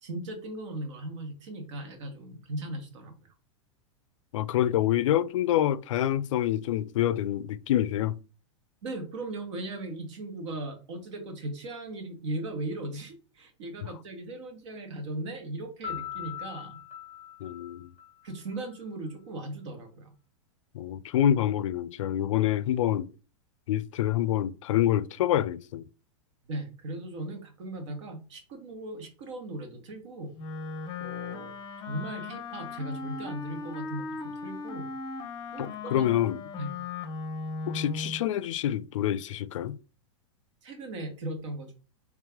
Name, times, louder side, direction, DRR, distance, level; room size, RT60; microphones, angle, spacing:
voice 1, 0.0-3.1 8.8-16.8 18.2-20.1 26.5-30.3 31.0-31.5 31.9-34.9 35.5-36.0 36.6-36.8 40.6-41.7, right 2 dB, 65° right, 1.4 m, -38 dB
voice 2, 4.3-8.2 13.8-13.9 17.4-17.9 20.7-23.1 23.7-25.9 35.6-36.4 37.7-39.8, left 11 dB, 75° left, 0.4 m, -27 dB
Piano, 15.8-18.6, left 10 dB, 10° right, 1.3 m, -40 dB
Wind instrument woodwind instrument, 30.4-38.2, left 4 dB, 30° left, 0.6 m, -37 dB
3.2 x 3.2 x 3.5 m
hypercardioid pair, 125°, 16 cm